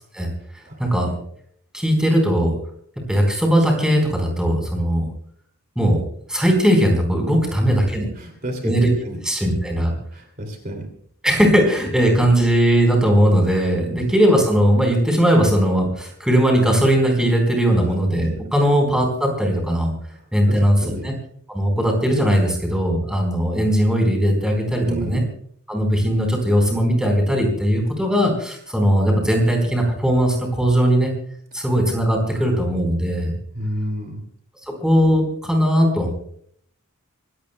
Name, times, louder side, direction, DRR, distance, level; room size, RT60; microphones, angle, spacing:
voice 1, 1.7-2.5 3.1-5.1 5.8-6.0 6.3-8.1 8.6-8.9 9.2-9.9 11.2-19.9 20.3-20.8 21.0-21.1 21.5-25.2 25.7-31.1 31.5-33.3 34.8-36.1, equal, 5° right, 2 dB, 4.3 m, -18 dB
voice 2, 8.1-9.2 10.1-10.9 13.9-14.0 17.8-17.9 20.1-21.1 24.8-25.3 31.6-31.7 32.3-32.4 33.5-34.2, right 1 dB, 40° right, 3 dB, 2.6 m, -31 dB
26.0 x 17.5 x 2.3 m, 0.63 s
head